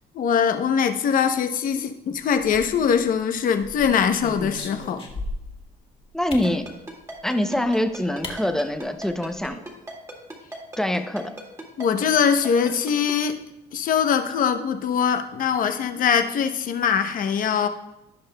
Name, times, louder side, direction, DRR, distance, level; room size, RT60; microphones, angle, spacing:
voice 1, 0.1-5.0 11.8-13.4 13.7-17.7, left 7 dB, 55° left, 7 dB, 0.8 m, -22 dB
sound 1, 2.4-3.1 3.6-5.6 6.3-6.6 7.7-7.8 8.2-8.4 8.7-8.8 9.1-9.5, left 2 dB, 35° left, 1.6 m, -36 dB
voice 2, 6.1-6.6 7.2-9.6 10.8-11.3, left 1 dB, 5° left, 7 dB, 0.6 m, -24 dB
Ringtone, 6.4-13.1, right 1 dB, 15° right, 2.0 m, -36 dB
16.5 x 5.5 x 2.2 m, 0.91 s
cardioid pair, 110°, 17 cm